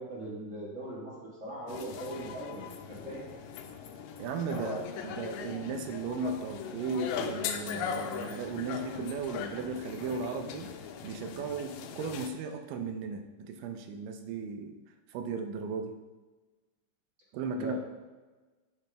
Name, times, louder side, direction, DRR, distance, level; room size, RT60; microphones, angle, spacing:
voice 1, 0.0-3.2 4.5-4.7 17.5-17.7, right 1 dB, 50° right, -6 dB, 0.9 m, -40 dB
sound 1, 1.7-12.3, left 7 dB, 85° left, 2.2 m, -39 dB
voice 2, 4.2-10.7 11.0-14.8 15.1-16.0 17.3-17.7, right 4 dB, 85° right, 6 dB, 2.3 m, -36 dB
9.0 x 5.1 x 3.3 m, 1.2 s
omnidirectional pair, 3.9 m